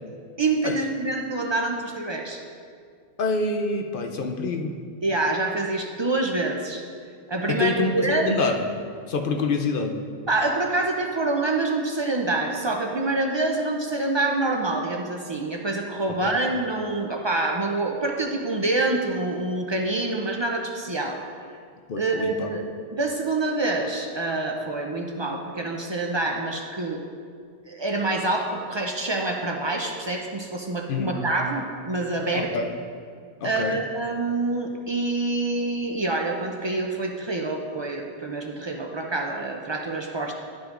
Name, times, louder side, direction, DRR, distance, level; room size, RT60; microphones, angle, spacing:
voice 1, 0.4-2.4 5.0-6.8 7.3-8.3 10.3-21.2 22.0-22.6 22.9-27.0 27.7-32.6 33.4-40.3, right 2 dB, 45° right, 2 dB, 0.3 m, -26 dB
voice 2, 3.2-4.8 7.5-8.6 9.1-10.0 16.1-16.2 21.9-22.5 30.9-31.1 32.3-32.6 33.4-33.8, left 4 dB, 60° left, 4 dB, 0.7 m, -26 dB
11.5 x 6.1 x 2.5 m, 2.2 s
omnidirectional pair, 1.1 m